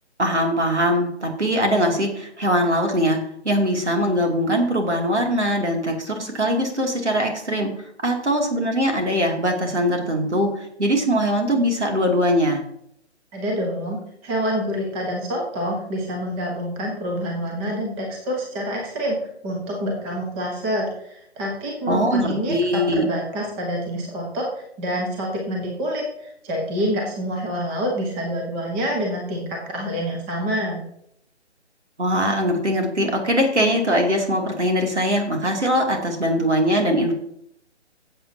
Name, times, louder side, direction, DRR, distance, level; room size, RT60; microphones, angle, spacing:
voice 1, 0.2-3.2 3.4-7.7 8.0-10.5 10.8-12.6 21.9-23.0 32.0-37.1, equal, 75° right, 2 dB, 2.7 m, -21 dB
voice 2, 13.3-30.8, equal, 10° right, -1 dB, 1.0 m, -27 dB
15.5 x 8.0 x 2.8 m, 0.72 s
figure-of-eight pair, 145°, 35 cm